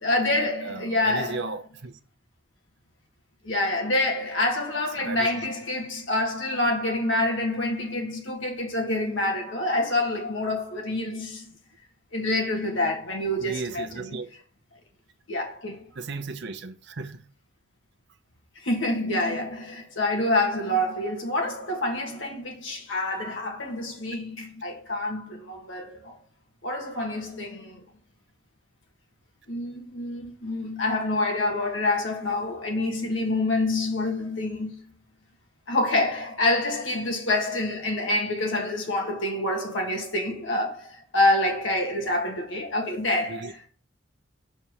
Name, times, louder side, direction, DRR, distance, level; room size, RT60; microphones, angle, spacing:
voice 1, 0.0-1.6 3.4-11.5 12.1-14.2 15.3-15.9 18.6-26.2 26.6-27.8 29.5-34.8 35.7-43.7, left 2 dB, 65° left, 1.8 m, -27 dB
voice 2, 0.6-2.0 5.0-5.5 13.4-14.3 16.0-17.2 32.8-32.9 43.3-43.5, right 3 dB, 60° right, 0.7 m, -36 dB
6.8 x 4.3 x 4.9 m
head